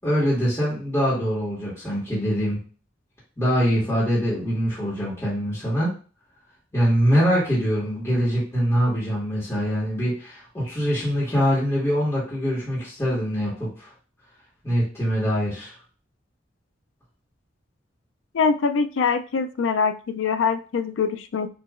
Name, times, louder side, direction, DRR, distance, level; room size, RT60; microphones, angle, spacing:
voice 1, 0.0-2.6 3.4-5.9 6.7-13.9 14.6-15.7, equal, 15° left, -8 dB, 1.7 m, -23 dB
voice 2, 18.3-21.5, left 5 dB, 90° left, 10 dB, 0.4 m, -23 dB
6.3 x 2.9 x 2.5 m, 0.39 s
head